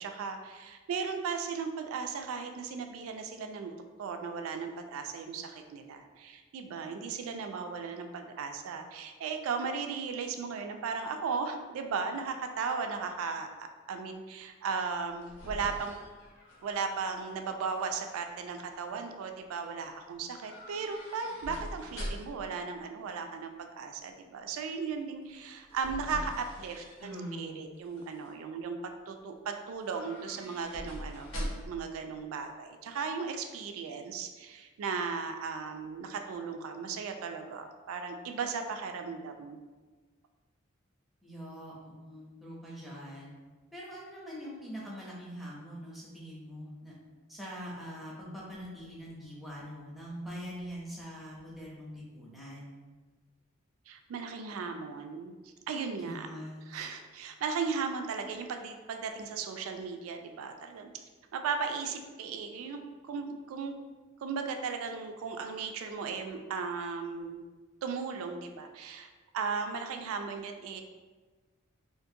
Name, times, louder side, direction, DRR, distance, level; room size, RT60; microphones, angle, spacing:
voice 1, 0.0-15.9 16.6-28.8 29.1-39.6 53.9-56.3 56.7-60.9 61.3-63.8 64.2-67.4 67.8-69.1 69.3-70.8, right 5 dB, 80° right, 6 dB, 0.3 m, -36 dB
sound 1, 14.9-17.3 17.6-18.2 20.4-22.5 25.3-27.4 27.8-28.3 29.8-31.9 32.1-32.2, equal, 75° left, 0.7 m, -43 dB
voice 2, 27.0-27.7 41.2-43.3 43.7-46.9 47.3-52.8 56.0-56.9, equal, ahead, -6 dB, 0.5 m, -43 dB
2.5 x 2.5 x 2.6 m, 1.3 s
head